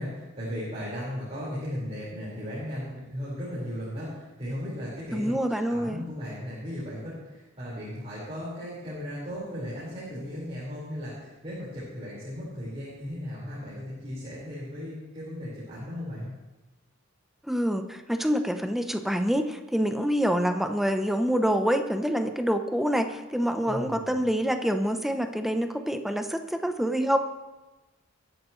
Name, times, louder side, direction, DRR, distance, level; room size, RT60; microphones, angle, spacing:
voice 1, 0.0-16.3 23.6-24.3, equal, 30° right, -9 dB, 5.0 m, -36 dB
voice 2, 5.1-6.0 17.5-27.2, equal, ahead, 6 dB, 0.8 m, -26 dB
22.0 x 11.0 x 3.2 m, 1.1 s
head